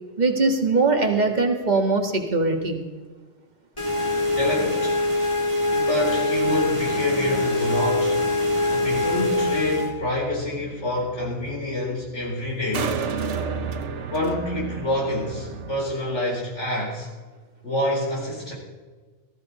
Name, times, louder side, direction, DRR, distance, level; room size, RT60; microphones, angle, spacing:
voice 1, 0.2-2.8, right 3 dB, 40° right, 2 dB, 2.0 m, -21 dB
sound 1, 3.8-9.9, left 2 dB, 25° left, 2.2 m, -23 dB
voice 2, 4.1-5.0 5.7-8.2 8.7-13.0 14.1-17.1 17.6-18.5, left 1 dB, 80° left, -3 dB, 4.7 m, -27 dB
sound 2, 8.1-15.8, right 5 dB, 80° right, 1.3 m, -33 dB
17.5 x 14.0 x 4.2 m, 1.4 s
omnidirectional pair, 1.2 m